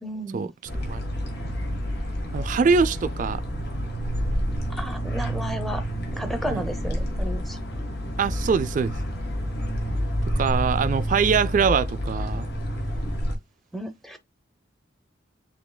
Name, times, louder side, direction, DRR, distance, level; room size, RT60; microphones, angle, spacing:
voice 1, 0.0-0.5 4.7-5.8 6.1-7.6 13.7-14.2, equal, ahead, 0.7 m, -33 dB
sound 1, 0.7-13.4, equal, 55° left, 1.6 m, -29 dB
voice 2, 2.3-3.4 6.5-6.7 8.2-8.9 10.4-12.5, right 5 dB, 40° right, 0.3 m, -23 dB
7.4 x 2.8 x 2.2 m
head